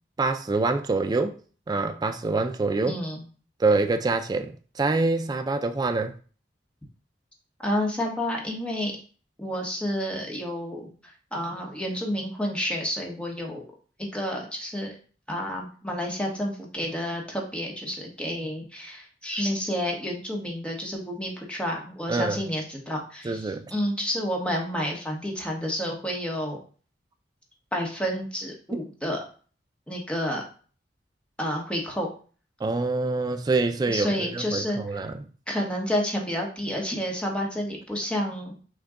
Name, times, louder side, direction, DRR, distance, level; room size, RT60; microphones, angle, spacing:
voice 1, 0.2-1.4 1.7-3.0 3.6-6.1 22.1-22.4 23.2-23.6 32.6-35.3, right 3 dB, 25° right, 0.3 m, -25 dB
voice 2, 2.9-3.2 7.6-8.9 9.4-10.9 11.3-13.6 14.1-15.0 15.3-26.6 27.7-29.2 29.9-30.4 31.4-32.1 33.9-34.8 35.5-38.6, equal, 5° left, 1.0 m, -30 dB
6.2 x 2.2 x 3.6 m
head